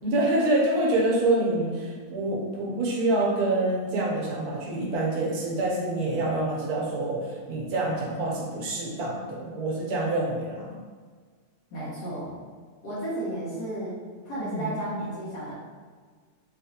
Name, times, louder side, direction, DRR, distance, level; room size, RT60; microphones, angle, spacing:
voice 1, 0.0-10.8 14.4-14.7, right 2 dB, 70° right, -3 dB, 1.2 m, -26 dB
voice 2, 11.7-12.4 12.8-14.0 14.3-15.5, right 1 dB, 75° left, -10 dB, 1.4 m, -33 dB
3.1 x 2.8 x 2.7 m, 1.6 s
omnidirectional pair, 1.7 m